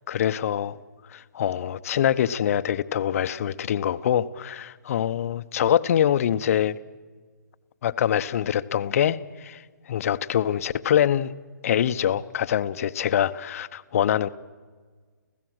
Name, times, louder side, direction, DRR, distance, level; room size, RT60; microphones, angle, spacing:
voice 1, 0.1-0.8 1.1-6.8 7.8-9.6 9.9-11.3 11.6-14.3, left 10 dB, 50° left, 14 dB, 0.8 m, -24 dB
29.5 x 16.0 x 6.3 m, 1.5 s
figure-of-eight pair, 135°, 10 cm